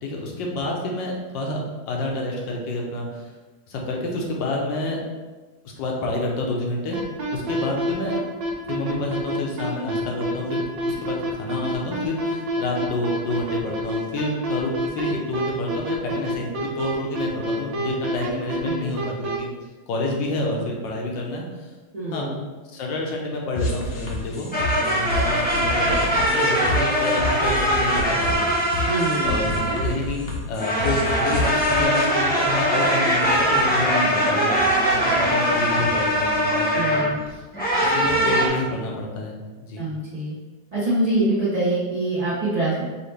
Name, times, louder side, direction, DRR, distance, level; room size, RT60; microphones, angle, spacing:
voice 1, 0.0-3.3 3.7-5.0 5.6-7.0 7.3-8.2 8.7-19.5 19.9-21.7 22.1-22.3 22.7-28.5 29.2-29.5 29.8-37.4 37.8-39.4 39.6-39.8, left 2 dB, 85° left, -1 dB, 1.5 m, -28 dB
sound 1, 6.9-19.4, right 1 dB, 90° right, 1.5 m, -27 dB
voice 2, 18.6-18.9 21.9-22.4 28.9-29.4 36.7-37.2 39.8-40.3 40.7-42.8, right 2 dB, 35° right, -10 dB, 0.6 m, -24 dB
sound 2, 23.6-31.8, left 2 dB, 55° left, 0.6 m, -29 dB
sound 3, 24.5-30.0 30.6-37.1 37.5-38.5, equal, 15° left, 0.4 m, -21 dB
5.3 x 2.9 x 3.3 m, 1.3 s
omnidirectional pair, 1.9 m